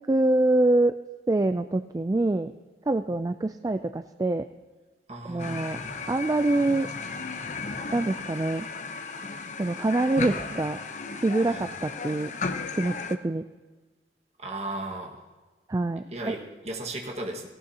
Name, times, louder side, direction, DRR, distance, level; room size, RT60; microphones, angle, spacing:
voice 1, 0.1-1.0 1.3-2.5 2.9-4.5 5.3-5.8 6.1-6.9 7.9-8.7 9.6-10.8 11.2-12.3 12.8-13.4 15.7-16.4, right 2 dB, 20° right, 9 dB, 0.3 m, -25 dB
voice 2, 5.1-5.7 10.5-10.6 11.4-11.7 14.4-15.2 16.1-17.5, right 2 dB, 40° right, 1 dB, 1.7 m, -36 dB
sound 1, 5.4-13.2, left 4 dB, 45° left, 0.8 m, -35 dB
17.5 x 17.5 x 2.8 m, 1.3 s
head